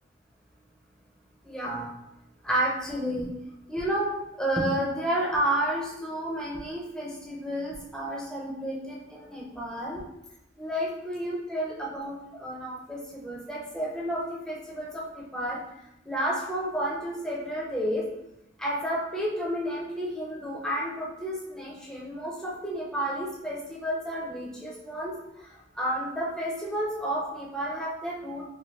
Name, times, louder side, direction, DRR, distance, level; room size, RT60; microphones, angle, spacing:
voice 1, 1.4-1.9 2.4-3.3 3.7-4.1 4.4-10.0 10.6-15.6 16.1-18.1 18.6-25.5 25.8-28.5, right 1 dB, 5° left, -4 dB, 0.5 m, -31 dB
3.1 x 2.5 x 2.7 m, 0.88 s
head